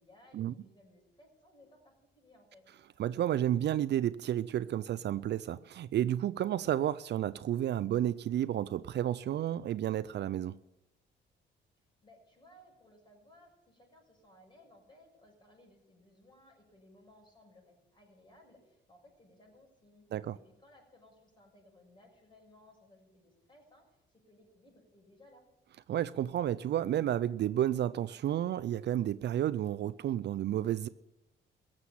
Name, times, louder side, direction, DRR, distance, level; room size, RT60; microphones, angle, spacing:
voice 1, 0.0-2.7 12.0-20.1 20.3-25.5, left 1 dB, 25° left, 7.0 m, -61 dB
voice 2, 3.0-10.6 20.1-20.4 25.9-30.9, right 11 dB, 60° right, 0.5 m, -31 dB
16.0 x 7.5 x 9.8 m
cardioid pair, 90°, 20 cm